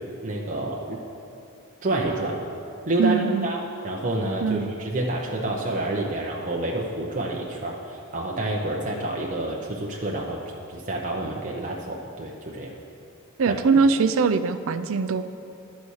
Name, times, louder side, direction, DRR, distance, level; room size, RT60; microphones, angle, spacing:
voice 1, 0.2-1.0 1.8-2.4 2.9-10.4 10.7-12.7 13.5-13.6, right 2 dB, 35° right, -2 dB, 0.7 m, -28 dB
voice 2, 3.0-3.5 4.4-4.7 13.4-15.3, right 4 dB, 65° right, 11 dB, 0.4 m, -22 dB
12.5 x 4.1 x 6.4 m, 2.7 s
head